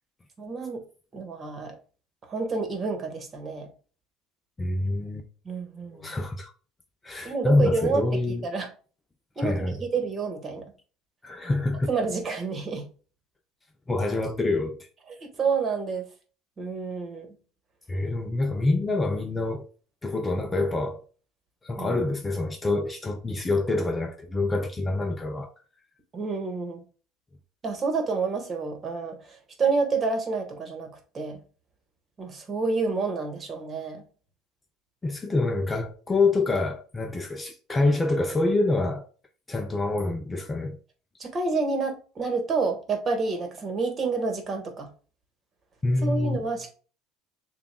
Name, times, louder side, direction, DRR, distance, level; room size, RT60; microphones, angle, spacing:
voice 1, 0.4-0.8 1.1-1.8 2.2-3.7 5.4-6.1 7.2-8.7 9.4-10.7 11.9-12.9 15.1-16.1 16.6-17.3 21.8-22.0 26.1-26.8 27.6-31.4 32.2-34.0 41.2-44.9 46.0-46.7, right 4 dB, 30° right, 1.4 m, -29 dB
voice 2, 4.6-5.2 6.0-6.5 7.0-8.5 9.4-9.8 11.2-11.9 13.9-14.8 17.9-19.7 20.0-21.0 21.6-25.5 35.0-39.1 39.5-40.8 45.8-46.4, left 2 dB, 20° left, 0.5 m, -26 dB
6.9 x 2.4 x 2.2 m
supercardioid pair, 105°, 0 cm